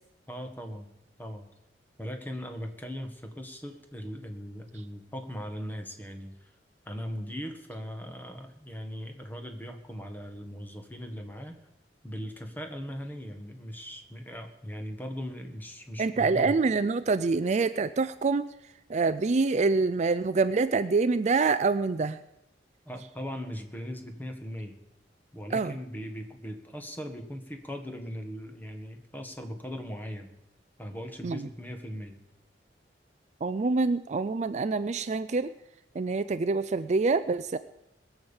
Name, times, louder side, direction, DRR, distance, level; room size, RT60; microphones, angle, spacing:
voice 1, 0.3-0.9 1.2-1.5 2.0-6.5 6.8-11.6 12.0-16.6 22.9-24.8 25.3-30.3 30.8-32.2, equal, 10° left, 5 dB, 1.6 m, -39 dB
voice 2, 16.0-18.5 18.9-22.2 25.5-25.7 31.2-31.4 33.4-35.5 36.0-37.6, right 4 dB, 40° right, 13 dB, 0.4 m, -26 dB
21.0 x 7.2 x 7.1 m, 0.88 s
head